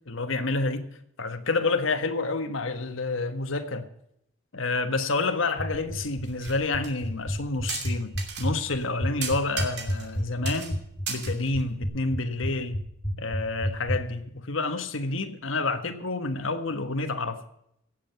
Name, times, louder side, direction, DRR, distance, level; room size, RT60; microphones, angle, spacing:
voice 1, 0.1-0.9 1.2-3.9 4.5-10.8 11.1-12.8 13.2-17.4, left 3 dB, 85° left, 1.4 m, -29 dB
sound 1, 5.6-14.0, equal, 20° left, 2.1 m, -29 dB
sound 2, 6.2-6.6 6.8-6.9 7.7-8.5 8.8-8.9 9.2-10.2 10.5-10.7 11.1-11.9, right 6 dB, 55° right, 2.7 m, -35 dB
17.0 x 7.7 x 6.8 m
head